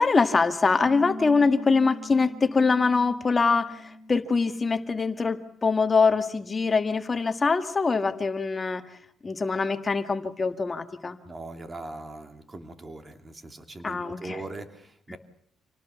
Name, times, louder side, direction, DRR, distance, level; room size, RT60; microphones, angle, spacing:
voice 1, 0.0-8.8 9.2-11.2 13.8-14.4, left 4 dB, 30° left, 7 dB, 1.8 m, -24 dB
sound 1, 0.9-7.1, left 1 dB, 5° left, 6.0 m, -44 dB
voice 2, 11.2-15.2, right 2 dB, 25° right, 6 dB, 2.8 m, -40 dB
28.0 x 19.0 x 7.1 m, 0.68 s
cardioid pair, 90°, 0 cm